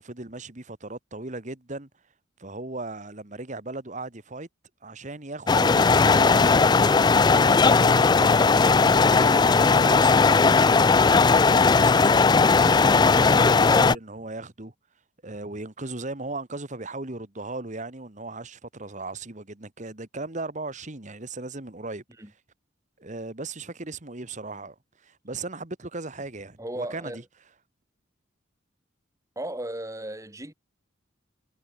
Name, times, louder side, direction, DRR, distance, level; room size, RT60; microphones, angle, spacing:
voice 1, 0.0-1.9 2.4-4.5 4.8-10.4 11.3-12.9 13.2-14.7 15.2-22.0 23.0-27.2, right 2 dB, 40° right, 1.7 m, -37 dB
sound 1, 5.5-13.9, left 4 dB, 20° left, 0.3 m, -18 dB
voice 2, 26.6-27.2 29.4-30.5, right 1 dB, 15° right, 2.8 m, -35 dB
head